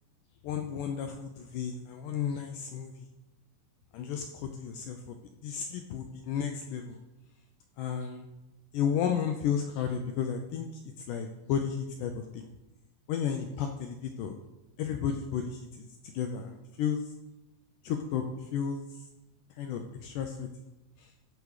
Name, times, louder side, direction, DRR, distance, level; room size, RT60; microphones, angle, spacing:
voice 1, 0.4-3.0 3.9-5.1 5.4-7.0 7.8-8.3 8.7-10.7 11.1-12.5 13.1-14.3 14.8-17.0 17.8-18.8 19.6-20.5 21.0-21.1, left 7 dB, 85° left, 5 dB, 1.8 m, -33 dB
15.0 x 5.0 x 4.8 m, 1.0 s
omnidirectional pair, 4.4 m